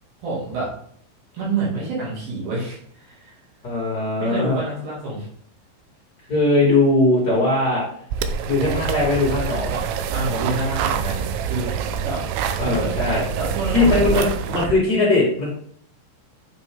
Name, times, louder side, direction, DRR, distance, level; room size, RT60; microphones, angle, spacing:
voice 1, 0.2-0.7 1.3-3.4 4.2-5.3 10.1-11.7 12.0-12.2 12.6-14.7, right 3 dB, 65° right, -6 dB, 4.7 m, -28 dB
voice 2, 3.6-4.6 6.3-7.8 8.5-9.8 12.6-13.2 13.7-15.5, left 2 dB, 85° left, -4 dB, 0.8 m, -19 dB
sound 1, 8.1-14.7, right 7 dB, 85° right, 2.8 m, -26 dB
8.3 x 5.5 x 3.7 m, 0.62 s
omnidirectional pair, 5.6 m